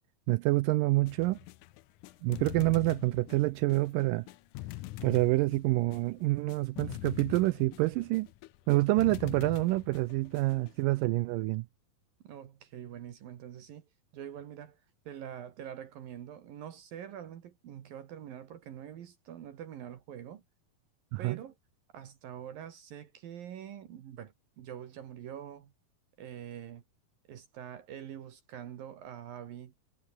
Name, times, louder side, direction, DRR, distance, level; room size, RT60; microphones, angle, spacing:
voice 1, 0.3-1.4 2.2-4.3 5.0-8.3 8.7-11.7 21.1-21.4, right 20 dB, 85° right, 1.9 m, -27 dB
sound 1, 1.0-10.8, left 17 dB, 80° left, 1.8 m, -44 dB
voice 2, 12.2-20.4 21.2-21.6 21.9-25.7 26.2-26.8 27.3-29.7, right 10 dB, 70° right, 3.4 m, -45 dB
omnidirectional pair, 4.4 m